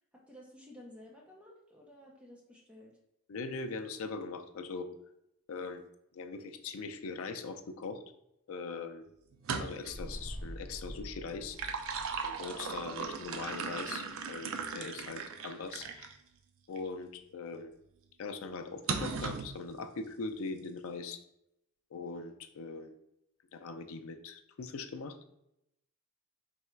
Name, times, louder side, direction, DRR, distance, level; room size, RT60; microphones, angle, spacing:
voice 1, 0.1-3.0, left 1 dB, 5° right, -3 dB, 0.6 m, -53 dB
voice 2, 3.3-4.9 5.5-5.8 6.1-8.0 8.5-9.0 9.6-11.8 12.2-16.1 16.7-17.7 18.2-21.2 21.9-22.9 23.5-25.2, left 4 dB, 65° left, 7 dB, 0.4 m, -41 dB
sound 1, 9.3-10.0 11.3-16.1 16.8-16.9 18.9-19.5, right 5 dB, 60° right, 0.4 m, -37 dB
sound 2, 9.9-14.4 14.7-14.8, equal, 25° right, 1.4 m, -47 dB
3.4 x 2.3 x 4.3 m, 0.81 s
head